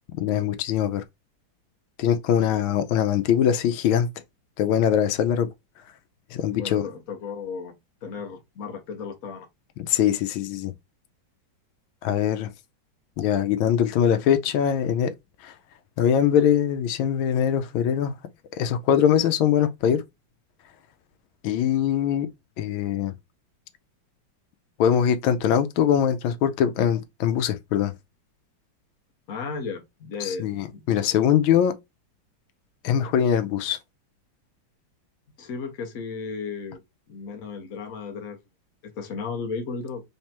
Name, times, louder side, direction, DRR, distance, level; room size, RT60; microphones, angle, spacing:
voice 1, 0.2-1.0 2.0-4.1 4.6-5.5 6.3-6.8 9.9-10.7 12.0-12.5 13.2-15.1 15.4-15.5 16.0-18.1 18.6-20.0 21.4-22.3 22.6-23.1 24.8-27.9 30.2-31.7 32.8-33.8, left 9 dB, 90° left, 1.4 m, -22 dB
voice 2, 6.5-7.7 8.0-9.5 29.3-30.8 35.4-36.8 37.1-38.4 38.8-40.0, left 5 dB, 55° left, 1.2 m, -34 dB
3.5 x 3.3 x 2.8 m
omnidirectional pair, 2.1 m